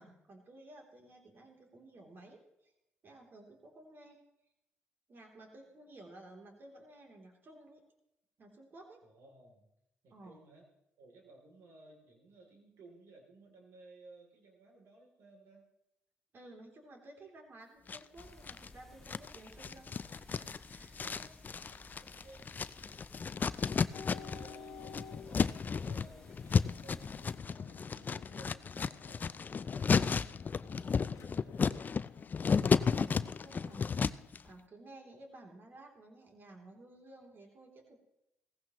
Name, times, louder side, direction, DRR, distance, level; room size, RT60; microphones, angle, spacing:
voice 1, 0.0-2.7 3.0-4.2 5.1-7.8 8.4-9.0 10.1-10.4 16.3-21.3 32.8-38.0, right 2 dB, 50° right, 1 dB, 3.2 m, -55 dB
voice 2, 9.0-9.7 10.0-10.6 11.0-15.6 20.8-21.3 21.7-23.6 24.0-31.7, right 2 dB, 80° right, 1 dB, 3.1 m, -59 dB
sound 1, 17.9-18.7 19.1-24.6 24.8-34.4, left 5 dB, 40° left, 0.4 m, -33 dB
sound 2, 18.2-27.4, left 1 dB, 10° left, 2.5 m, -58 dB
sound 3, 23.9-34.3, left 6 dB, 75° left, 1.1 m, -54 dB
16.5 x 15.0 x 3.1 m, 0.84 s
supercardioid pair, 65°, 5 cm